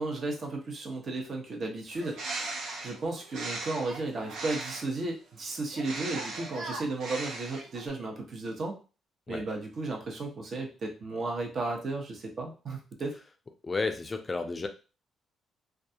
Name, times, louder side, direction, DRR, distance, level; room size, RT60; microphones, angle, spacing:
voice 1, 0.0-2.6 2.8-8.8 9.3-13.2, right 2 dB, 50° right, 1 dB, 0.8 m, -34 dB
Bird, 1.9-5.0 5.7-7.9, right 2 dB, 80° right, 0.7 m, -38 dB
voice 2, 13.6-14.7, left 3 dB, 30° left, 6 dB, 0.3 m, -32 dB
2.3 x 2.2 x 2.7 m, 0.34 s
cardioid pair, 90°, 0 cm